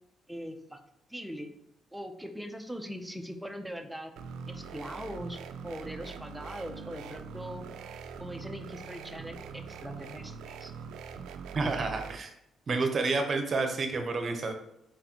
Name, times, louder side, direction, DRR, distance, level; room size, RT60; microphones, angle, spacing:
voice 1, 0.3-0.8 1.1-1.5 1.9-4.1 4.5-5.4 5.6-7.7 8.2-10.7, equal, 5° right, 5 dB, 0.6 m, -41 dB
sound 1, 4.2-12.2, right 6 dB, 90° right, 0.3 m, -43 dB
voice 2, 11.5-12.3 12.7-14.5, right 3 dB, 45° right, 5 dB, 0.8 m, -29 dB
4.4 x 3.8 x 2.9 m, 0.80 s
cardioid pair, 90°, 0 cm